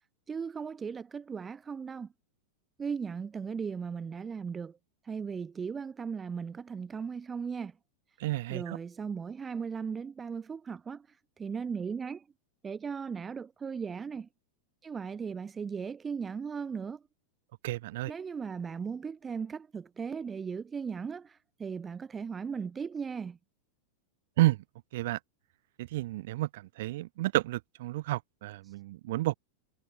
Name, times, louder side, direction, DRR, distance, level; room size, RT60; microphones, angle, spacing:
voice 1, 0.3-2.1 2.8-4.8 5.0-7.7 8.5-11.1 11.4-12.2 12.6-14.3 14.8-17.0 18.0-23.4, right 6 dB, 20° right, 3.0 m, -37 dB
voice 2, 8.2-8.8 17.6-18.1 24.4-24.6 24.9-25.2 25.8-29.4, right 17 dB, 55° right, 5.5 m, -30 dB
figure-of-eight pair, 90°, 0 cm